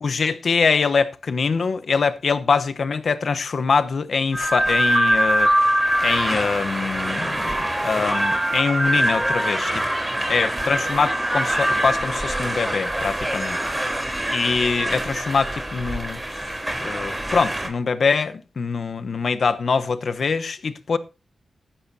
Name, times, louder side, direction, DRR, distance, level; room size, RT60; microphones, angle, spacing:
voice 1, 0.0-5.5 6.0-7.5 7.8-9.8 10.3-13.6 14.3-16.5 16.8-21.0, left 5 dB, 65° left, 0.9 m, -23 dB
sound 1, 4.3-17.7, right 1 dB, 15° right, 3.7 m, -23 dB
15.5 x 11.5 x 2.8 m
cardioid pair, 70°, 0 cm